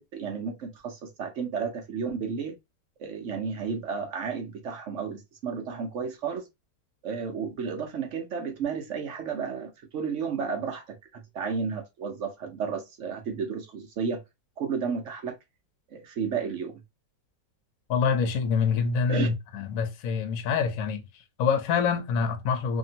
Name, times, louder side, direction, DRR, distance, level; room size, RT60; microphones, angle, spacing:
voice 1, 0.0-2.6 3.0-6.5 7.0-14.2 14.6-15.4 15.9-16.8 19.1-19.3, right 6 dB, 65° right, 0.7 m, -32 dB
voice 2, 17.9-22.8, left 6 dB, 60° left, 1.0 m, -26 dB
2.8 x 2.7 x 2.7 m
omnidirectional pair, 1.9 m